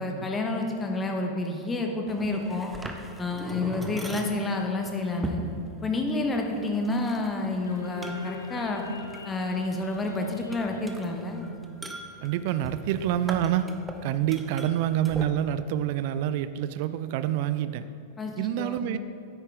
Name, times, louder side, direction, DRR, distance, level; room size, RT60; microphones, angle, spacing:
voice 1, 0.0-2.7 3.2-5.4 5.8-8.8 9.2-11.4 18.2-18.9, left 2 dB, 15° left, 2 dB, 1.1 m, -29 dB
sound 1, 2.1-15.2, right 1 dB, 10° right, 0.7 m, -41 dB
sound 2, 7.6-12.0, left 3 dB, 75° left, 0.6 m, -42 dB
voice 2, 12.2-13.7 14.0-17.8 18.4-19.0, right 11 dB, 50° right, 13 dB, 0.4 m, -27 dB
9.7 x 8.5 x 3.5 m, 2.5 s
figure-of-eight pair, 90°, 0 cm